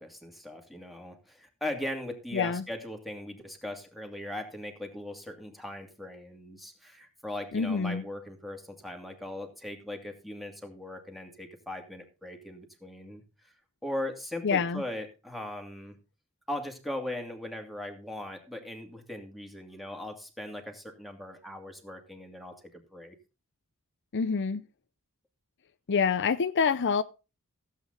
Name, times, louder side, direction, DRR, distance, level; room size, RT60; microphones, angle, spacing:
voice 1, 0.0-13.2 13.8-16.0 16.5-23.1, left 1 dB, ahead, 2.5 m, -39 dB
voice 2, 2.3-2.6 7.5-8.0 14.4-14.8 24.1-24.6 25.9-27.0, left 5 dB, 55° left, 0.6 m, -26 dB
15.5 x 8.4 x 3.9 m
head